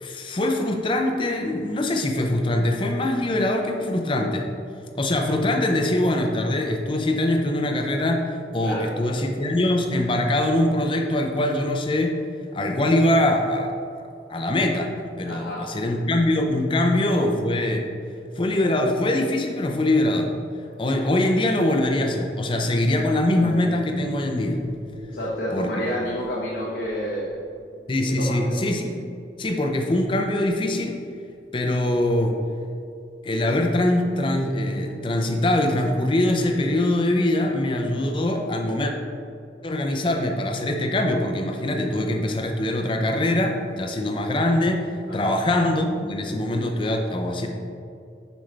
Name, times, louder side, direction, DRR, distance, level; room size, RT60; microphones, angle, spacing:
voice 1, 0.0-4.5 4.9-12.2 12.5-13.7 14.3-17.8 18.4-20.3 20.8-24.6 25.5-25.7 27.9-29.0 29.4-31.1 31.5-32.4 33.2-38.9 39.6-44.9 45.1-47.5, left 1 dB, 30° left, 3 dB, 0.6 m, -23 dB
voice 2, 8.6-9.2 15.2-15.9 25.1-27.4 28.2-28.6 45.1-45.3, equal, 80° left, -6 dB, 1.0 m, -30 dB
Harp, 23.3-32.5 33.4-33.5 33.9-34.0, equal, 5° left, 1.2 m, -41 dB
7.2 x 5.3 x 3.3 m, 2.5 s
head